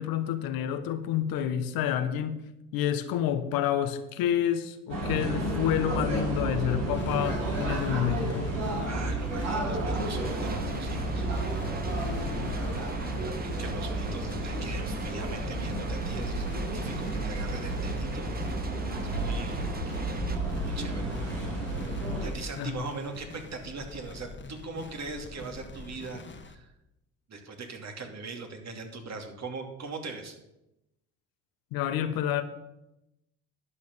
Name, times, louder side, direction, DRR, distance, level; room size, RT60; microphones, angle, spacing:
voice 1, 0.0-2.5 2.7-8.5 22.6-22.8 31.7-32.4, left 10 dB, 70° left, 10 dB, 1.2 m, -29 dB
sound 1, 4.9-22.3, right 1 dB, 90° right, 5.0 m, -31 dB
sound 2, 6.9-26.5, left 3 dB, 30° left, 1.5 m, -45 dB
voice 2, 8.9-11.3 12.3-18.3 18.9-19.7 20.6-21.1 22.2-26.7 27.3-30.4, right 3 dB, 45° right, 4 dB, 2.6 m, -41 dB
sound 3, 10.0-20.4, right 4 dB, 25° right, 1.2 m, -42 dB
11.0 x 6.3 x 7.2 m, 0.90 s
hypercardioid pair, 65°, 36 cm